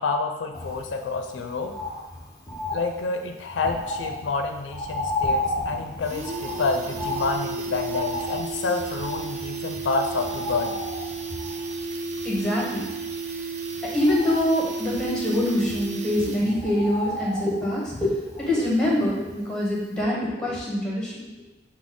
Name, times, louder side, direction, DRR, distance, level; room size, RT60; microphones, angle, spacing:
voice 1, 0.0-1.7 2.7-10.7, left 3 dB, 85° left, 4 dB, 0.4 m, -28 dB
Bird, 0.5-19.6 20.0-20.1, left 1 dB, 20° left, 0.7 m, -34 dB
sound 1, 5.1-5.2 5.5-5.6 5.9-16.7 17.0-17.1, right 3 dB, 40° right, 0.4 m, -33 dB
voice 2, 12.2-12.9 13.9-21.3, left 1 dB, 5° left, -5 dB, 1.0 m, -25 dB
6.0 x 2.1 x 3.7 m, 1.1 s
head